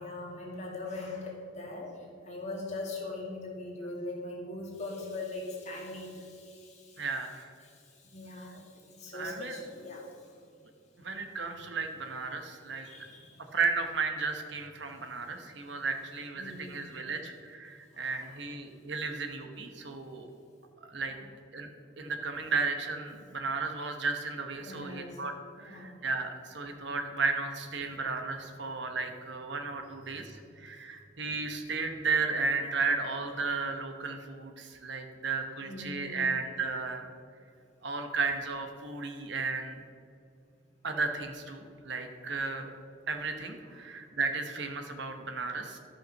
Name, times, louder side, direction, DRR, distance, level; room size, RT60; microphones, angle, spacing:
voice 1, 0.0-1.9 2.3-7.1 7.6-7.7 8.0-10.0 12.9-13.4 16.4-17.0 17.9-18.5 21.1-21.2 24.6-25.2 25.6-26.0 35.6-36.3 43.6-43.7, left 2 dB, 35° left, -2 dB, 2.3 m, -41 dB
voice 2, 7.0-7.5 9.1-9.6 11.0-12.9 13.5-20.3 20.9-21.1 21.5-21.7 22.0-37.1 37.8-39.8 40.8-42.7 43.1-45.8, right 4 dB, 55° right, 5 dB, 1.1 m, -34 dB
13.0 x 5.7 x 6.5 m, 2.4 s
head